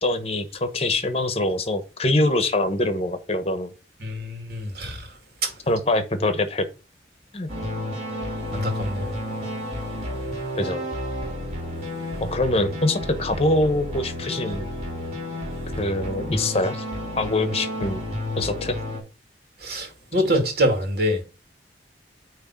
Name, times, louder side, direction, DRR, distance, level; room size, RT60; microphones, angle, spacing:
voice 1, 0.0-3.7 5.7-6.6 7.3-7.5 10.6-10.9 12.2-14.7 15.8-16.8 17.2-18.0 18.4-18.8, left 2 dB, 35° left, 1.0 m, -24 dB
voice 2, 4.0-5.0 5.4-5.5 8.5-9.1 19.6-21.2, equal, 60° right, 2.4 m, -25 dB
sound 1, 7.5-19.0, left 1 dB, 40° right, 3.8 m, -31 dB
8.9 x 3.2 x 6.0 m
head